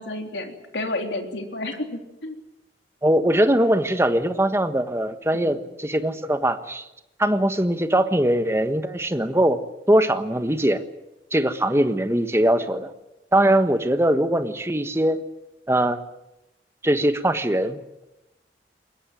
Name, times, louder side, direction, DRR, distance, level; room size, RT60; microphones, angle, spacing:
voice 1, 0.0-2.4 5.3-5.6, left 2 dB, 90° left, 4 dB, 3.6 m, -31 dB
voice 2, 3.0-6.9 7.2-9.6 9.9-10.8 11.3-12.9 13.3-15.2 15.7-16.0 16.8-17.8, right 1 dB, 15° right, 9 dB, 1.4 m, -21 dB
22.0 x 20.5 x 9.2 m, 0.92 s
head